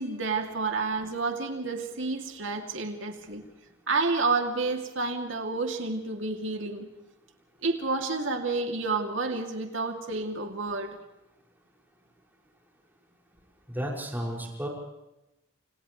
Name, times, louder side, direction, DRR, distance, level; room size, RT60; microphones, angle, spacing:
voice 1, 0.0-3.4 3.9-6.9 7.6-11.0, right 3 dB, 85° right, 3 dB, 2.9 m, -30 dB
voice 2, 13.7-14.7, equal, 10° right, -1 dB, 6.3 m, -32 dB
29.5 x 29.0 x 3.3 m, 0.94 s
head